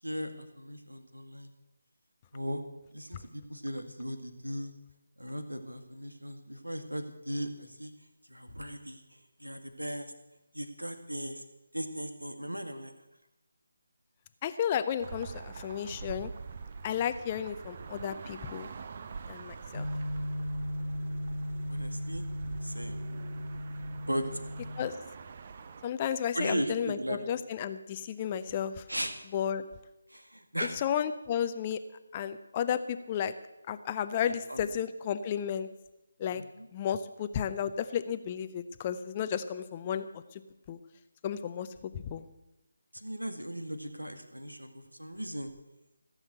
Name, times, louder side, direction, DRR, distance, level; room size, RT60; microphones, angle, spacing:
voice 1, 0.0-1.5 2.3-2.6 2.9-4.7 5.2-7.9 8.3-10.1 10.5-11.4 11.7-12.9 21.7-22.2 22.6-23.0 24.0-24.4 26.3-27.2 28.9-29.1 30.1-30.8 34.3-34.7 36.3-36.7 42.9-45.5, equal, 80° right, 7 dB, 2.0 m, -37 dB
voice 2, 14.4-16.3 16.8-18.7 19.3-19.9 24.8-25.0 25.8-28.8 29.3-29.6 30.8-31.8 32.1-33.3 33.7-35.7 36.2-36.4 36.7-40.4 40.7-40.8 41.2-41.7 41.9-42.2, left 9 dB, 20° left, 11 dB, 0.6 m, -33 dB
sound 1, 15.0-25.9, right 5 dB, 35° right, 0.7 m, -45 dB
sound 2, 19.7-24.9, equal, 75° left, 0.6 m, -36 dB
16.0 x 7.2 x 8.1 m, 0.95 s
figure-of-eight pair, 155°, 0 cm